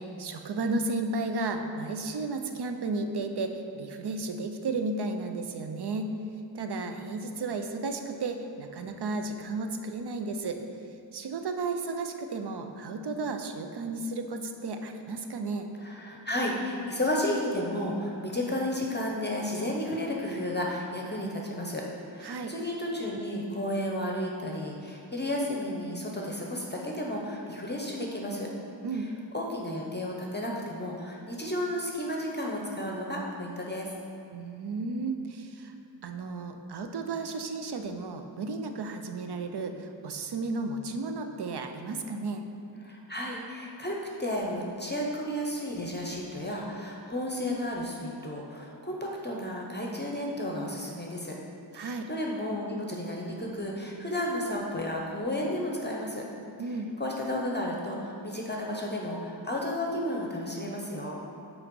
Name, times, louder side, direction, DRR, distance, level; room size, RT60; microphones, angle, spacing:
voice 1, 0.0-6.1 6.5-10.6 11.1-15.7 22.2-22.5 28.8-29.1 34.3-35.7 36.0-42.4 51.7-52.1 56.6-56.9, right 3 dB, 60° right, 6 dB, 0.6 m, -33 dB
voice 2, 15.8-28.5 29.3-33.9 42.8-51.4 51.7-56.2 57.0-61.2, left 1 dB, 25° left, -1 dB, 0.7 m, -32 dB
5.7 x 4.0 x 5.2 m, 2.8 s
wide cardioid pair, 80°, 44 cm